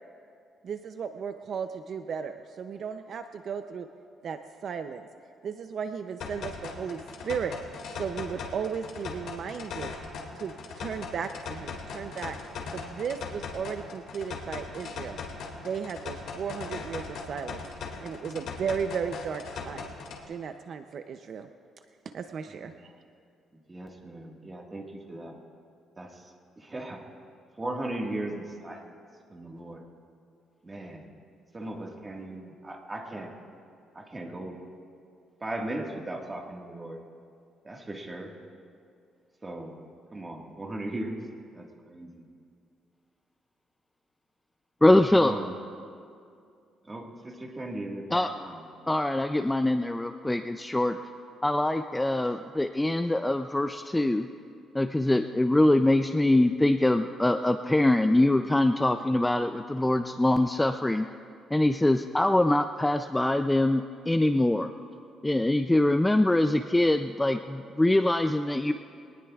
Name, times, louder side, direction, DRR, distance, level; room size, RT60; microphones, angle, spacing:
voice 1, 0.6-3.9 4.2-5.1 5.4-7.5 7.9-9.9 10.4-12.4 12.7-15.2 15.6-17.6 18.0-19.9 20.3-21.5 22.1-22.9, right 6 dB, 50° right, 8 dB, 0.5 m, -35 dB
sound 1, 6.2-20.2, left 4 dB, 75° left, 2.1 m, -39 dB
voice 2, 23.7-25.3 26.0-27.0 27.6-28.9 29.3-29.8 30.6-31.1 31.5-33.3 33.9-34.6 35.4-37.0 37.6-38.3 39.4-39.7 40.1-41.2 41.5-42.3 44.9-45.5 46.9-48.6, right 1 dB, 20° right, 1 dB, 1.6 m, -37 dB
voice 3, 44.8-45.3 48.1-48.3 48.9-51.0 51.4-54.3 54.7-61.1 61.5-64.7 65.2-68.7, left 1 dB, 10° left, 7 dB, 0.3 m, -23 dB
22.5 x 19.0 x 2.4 m, 2.4 s
cardioid pair, 150°, 0 cm